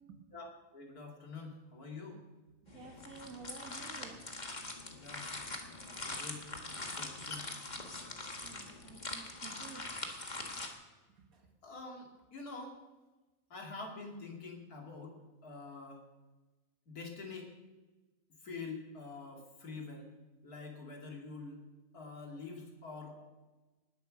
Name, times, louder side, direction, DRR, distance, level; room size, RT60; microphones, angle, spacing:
voice 1, 0.3-2.2 5.0-5.3 5.7-7.4 11.6-12.8 13.5-15.2 15.4-16.0 16.9-17.5 18.4-20.1 20.4-21.6 21.9-23.2, left 3 dB, 80° left, 1 dB, 3.0 m, -46 dB
sound 1, 2.7-10.7, left 2 dB, 30° left, 1.6 m, -43 dB
voice 2, 2.7-4.2 8.4-9.8 11.2-11.3, right 5 dB, 70° right, 4 dB, 2.0 m, -51 dB
19.5 x 8.2 x 6.3 m, 1.2 s
omnidirectional pair, 1.6 m